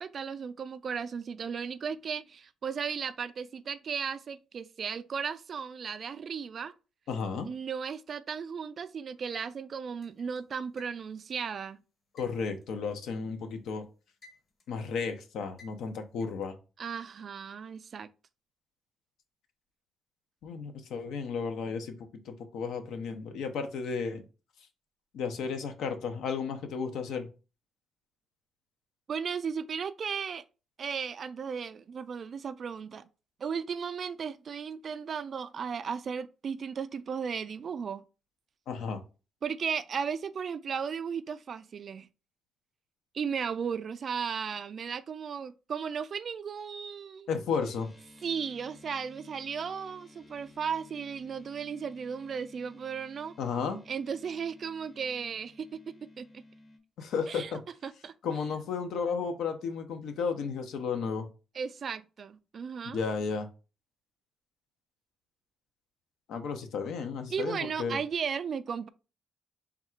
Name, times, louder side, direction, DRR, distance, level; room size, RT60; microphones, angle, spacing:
voice 1, 0.0-6.7 7.5-11.8 16.8-18.1 29.1-30.4 30.8-33.1 33.4-38.0 39.4-42.1 43.1-47.3 48.2-53.3 53.9-55.8 56.2-56.3 57.3-57.5 57.8-58.1 61.5-63.0 67.3-68.9, right 6 dB, 50° right, 0.3 m, -35 dB
voice 2, 7.1-7.5 12.1-13.9 14.7-16.6 20.4-24.2 25.1-27.3 38.7-39.0 47.3-47.9 53.4-53.8 57.0-57.6 58.2-61.3 62.9-63.5 66.3-68.0, left 5 dB, 80° left, 0.7 m, -33 dB
sound 1, 10.0-11.3 12.2-13.6 13.9-14.8 15.6-16.5, left 3 dB, 45° left, 1.1 m, -58 dB
sound 2, 47.6-56.8, left 2 dB, 25° left, 0.7 m, -55 dB
3.6 x 2.4 x 4.4 m
cardioid pair, 90°, 0 cm